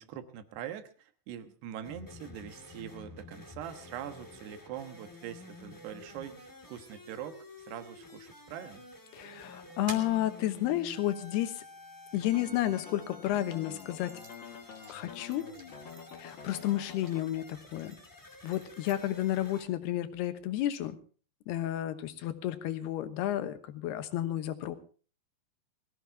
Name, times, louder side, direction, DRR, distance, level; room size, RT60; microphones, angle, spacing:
voice 1, 0.0-8.8, right 10 dB, 80° right, 9 dB, 3.4 m, -43 dB
sound 1, 1.8-19.6, left 2 dB, 20° left, 0.5 m, -51 dB
voice 2, 9.1-11.6 12.1-14.2 14.9-15.5 16.2-18.0 18.4-20.9 21.5-24.8, left 13 dB, 80° left, 10 dB, 3.1 m, -32 dB
sound 2, 9.1-12.7 13.3-19.6, right 4 dB, 50° right, 4.6 m, -53 dB
sound 3, 12.2-17.2, left 7 dB, 50° left, 1.4 m, -48 dB
21.5 x 15.5 x 3.6 m, 0.38 s
omnidirectional pair, 4.7 m